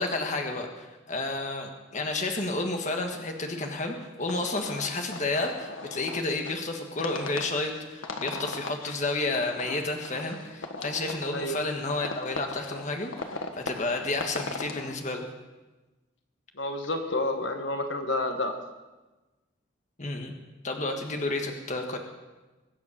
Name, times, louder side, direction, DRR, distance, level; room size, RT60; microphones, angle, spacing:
voice 1, 0.0-15.2 20.0-20.3 20.6-22.0, left 2 dB, 35° left, 3 dB, 1.6 m, -31 dB
sound 1, 4.2-15.0, left 3 dB, 90° left, 1.6 m, -39 dB
voice 2, 16.6-18.5, left 2 dB, 65° left, 5 dB, 1.6 m, -29 dB
23.0 x 8.4 x 6.7 m, 1.1 s
head